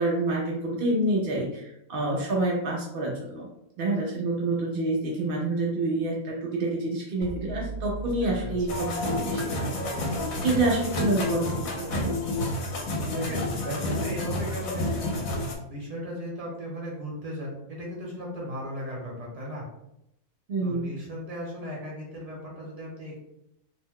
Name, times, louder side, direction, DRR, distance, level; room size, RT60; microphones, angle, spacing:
voice 1, 0.0-3.5 3.8-9.7 10.0-12.1 20.5-20.9, right 2 dB, 75° right, -2 dB, 0.5 m, -28 dB
sound 1, 7.2-11.9, right 3 dB, 35° left, 0.6 m, -40 dB
voice 2, 8.0-8.8 13.1-15.3 15.7-19.6 20.6-23.2, equal, 30° right, -3 dB, 0.9 m, -36 dB
sound 2, 8.7-15.5, left 1 dB, 75° left, 1.1 m, -30 dB
2.7 x 2.1 x 3.6 m, 0.81 s
omnidirectional pair, 1.5 m